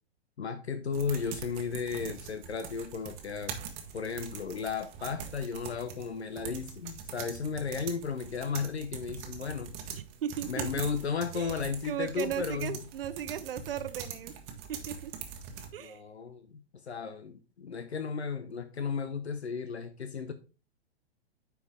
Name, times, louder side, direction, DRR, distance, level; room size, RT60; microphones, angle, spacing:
voice 1, 0.4-3.6 3.9-10.0 10.5-12.8 15.8-20.3, left 5 dB, 75° left, 10 dB, 0.8 m, -34 dB
sound 1, 0.9-15.7, right 7 dB, 30° right, 1.3 m, -43 dB
voice 2, 9.9-10.7 11.3-11.6 11.8-14.3 14.9-15.1 15.7-16.0, right 10 dB, 55° right, 13 dB, 0.8 m, -36 dB
9.5 x 4.6 x 3.5 m, 0.34 s
figure-of-eight pair, 110°, 33 cm